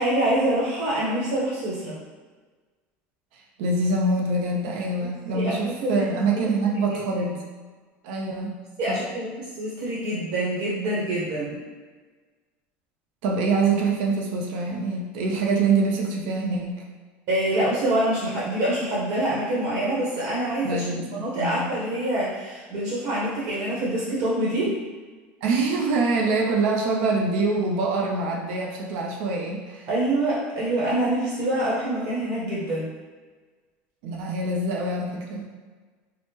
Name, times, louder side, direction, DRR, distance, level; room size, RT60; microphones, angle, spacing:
voice 1, 0.0-2.0 5.3-6.0 6.3-6.4 7.1-7.3 8.8-11.6 17.3-24.7 29.9-32.9, right 1 dB, 55° right, -7 dB, 0.9 m, -25 dB
voice 2, 3.6-7.4 8.0-8.6 8.9-9.1 13.2-16.8 20.6-21.7 25.4-29.8 34.0-35.5, right 3 dB, 75° right, 0 dB, 0.5 m, -25 dB
3.4 x 2.0 x 2.9 m, 1.4 s
supercardioid pair, 120°, 6 cm